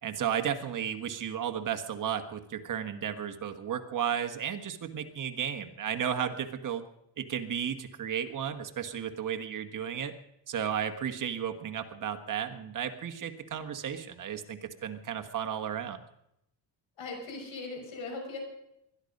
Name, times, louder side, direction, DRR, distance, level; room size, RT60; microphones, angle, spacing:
voice 1, 0.0-6.8 7.2-10.1 10.5-16.0, right 8 dB, 45° right, 6 dB, 1.5 m, -34 dB
voice 2, 17.0-18.4, left 3 dB, 90° left, 2 dB, 5.9 m, -39 dB
20.5 x 12.5 x 5.4 m, 0.81 s
cardioid pair, 145°, 45 cm